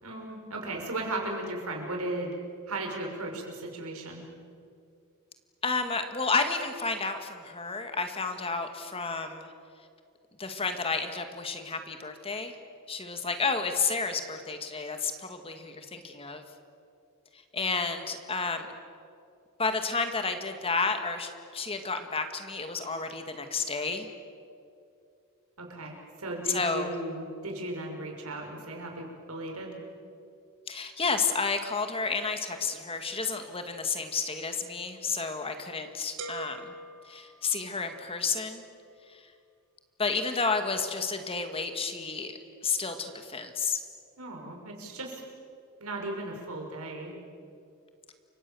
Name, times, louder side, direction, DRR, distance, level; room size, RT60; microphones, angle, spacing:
voice 1, 0.0-2.3 2.7-4.2 25.6-29.7 44.2-45.2 45.8-47.1, right 2 dB, 85° right, 1 dB, 5.9 m, -36 dB
voice 2, 5.6-9.5 10.4-12.6 12.9-16.4 17.3-18.7 19.6-24.1 26.5-26.9 30.7-36.7 37.0-38.6 39.1-39.3 40.0-43.8, left 4 dB, 25° left, 7 dB, 2.0 m, -31 dB
sound 1, 36.2-38.1, right 3 dB, 60° right, 2.3 m, -43 dB
29.5 x 25.0 x 7.1 m, 2.4 s
head